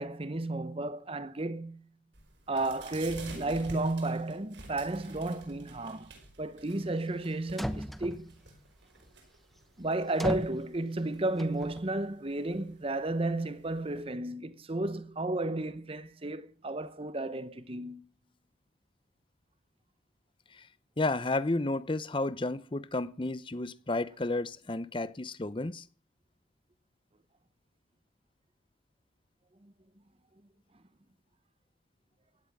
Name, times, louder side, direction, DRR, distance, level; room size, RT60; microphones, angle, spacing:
voice 1, 0.0-1.8 2.5-6.1 6.4-8.3 9.8-18.0 29.6-29.7, right 2 dB, 30° right, 0.9 m, -33 dB
sound 1, 2.1-14.0, right 2 dB, 70° right, 5.0 m, -51 dB
sound 2, 7.3-7.4 7.6-8.4 10.2-10.7 11.4-11.8, equal, ahead, 0.9 m, -35 dB
voice 2, 21.0-25.8, left 2 dB, 25° left, 0.7 m, -32 dB
16.0 x 11.0 x 6.1 m
head